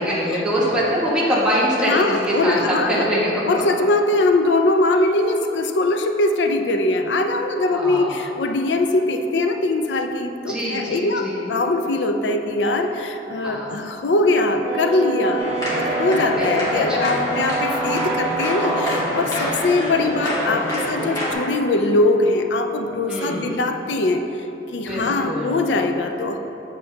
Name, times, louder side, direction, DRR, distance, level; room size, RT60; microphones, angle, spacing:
voice 1, 0.0-3.4 7.7-8.2 10.5-11.4 13.4-13.8 16.3-17.2 19.4-19.7 23.1-23.5 24.8-25.6, equal, 5° right, -7 dB, 1.3 m, -24 dB
voice 2, 1.9-3.1 3.5-24.2 24.7-26.4, left 2 dB, 85° left, 5 dB, 0.5 m, -21 dB
Wind instrument woodwind instrument, 14.6-19.1, right 3 dB, 80° right, 1.2 m, -28 dB
sound 1, 15.4-21.3, equal, 20° left, 1.5 m, -26 dB
7.7 x 6.8 x 2.8 m, 3.0 s
head